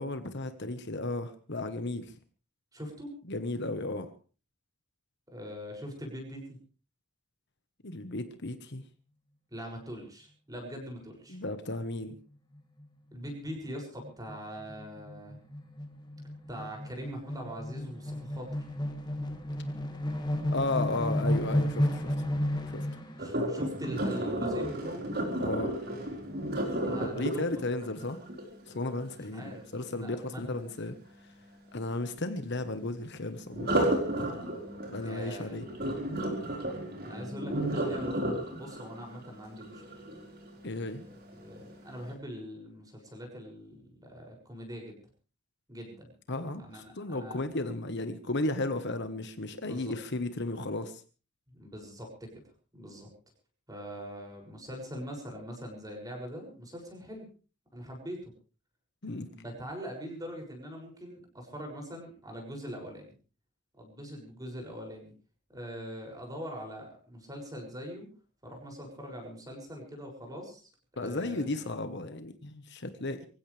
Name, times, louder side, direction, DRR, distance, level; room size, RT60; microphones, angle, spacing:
voice 1, 0.0-2.1 3.3-4.1 7.8-8.8 11.3-12.2 20.5-22.1 22.7-22.9 25.4-25.7 27.0-28.2 28.7-31.3 31.7-35.6 40.6-41.0 46.3-51.0 59.0-59.3 71.0-73.3, left 2 dB, 55° left, 9 dB, 1.3 m, -34 dB
voice 2, 2.7-3.1 5.3-6.6 9.5-11.4 13.1-15.4 16.5-18.7 23.2-25.1 26.8-27.4 29.3-30.6 35.0-35.6 36.8-38.3 38.6-40.0 41.1-44.9 45.7-46.1 46.6-47.5 49.7-49.9 51.5-53.1 53.7-57.3 57.7-58.3 59.3-63.1 63.8-65.1 65.5-68.1 68.4-71.6, equal, 15° right, 1 dB, 6.7 m, -42 dB
sound 1, 12.6-12.9 13.2-13.3 13.6-23.3, left 1 dB, 20° left, 2.0 m, -33 dB
Sink (filling or washing), 23.2-29.1 33.5-40.6 41.1-41.4 41.9-42.0, right 1 dB, 45° right, 4.7 m, -33 dB
24.5 x 16.0 x 3.4 m, 0.37 s
head